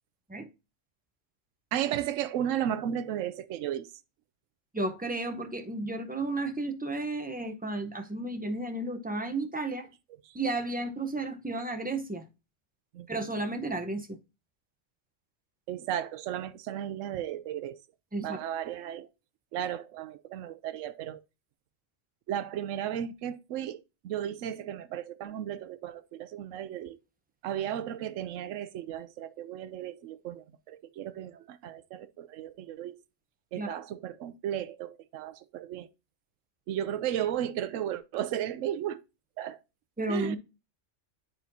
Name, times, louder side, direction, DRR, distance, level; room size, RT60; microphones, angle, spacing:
voice 1, 1.7-4.0 10.2-10.4 12.9-13.1 15.7-17.8 18.2-19.1 19.5-21.2 22.3-27.0 27.4-33.0 33.5-35.9 36.7-39.0 39.4-39.6 40.1-40.4, right 10 dB, 80° right, 0.9 m, -34 dB
voice 2, 4.7-9.9 10.3-12.2 13.1-14.2 18.1-18.4 33.6-33.7 40.0-40.4, right 2 dB, 10° right, 0.6 m, -33 dB
9.6 x 4.3 x 2.7 m
omnidirectional pair, 1.3 m